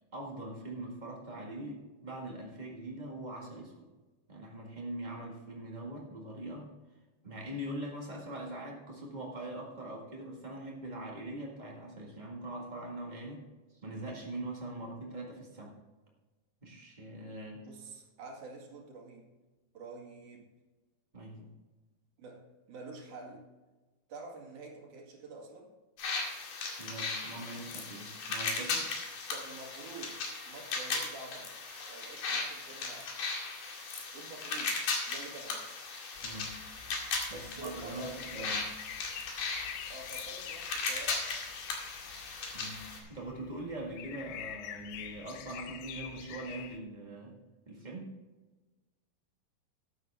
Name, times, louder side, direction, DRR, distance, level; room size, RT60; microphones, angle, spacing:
voice 1, 0.1-3.9 4.3-6.7 7.2-13.4 13.7-15.7 16.6-17.6 21.1-21.5 26.8-28.9 36.2-36.5 37.3-38.6 42.5-47.4 47.6-48.1, right 1 dB, 80° right, -2 dB, 0.4 m, -42 dB
voice 2, 17.7-19.3 19.7-20.5 22.2-23.4 24.1-25.7 29.3-30.1 30.5-31.6 31.9-33.1 34.1-34.8 35.1-35.8 37.3-38.6 39.9-41.4, right 3 dB, 55° right, 0 dB, 3.4 m, -47 dB
sound 1, 26.0-43.0, left 4 dB, 60° left, 3.5 m, -37 dB
sound 2, 36.1-46.8, left 9 dB, 80° left, 2.8 m, -46 dB
13.0 x 10.5 x 3.5 m, 1.2 s
omnidirectional pair, 4.4 m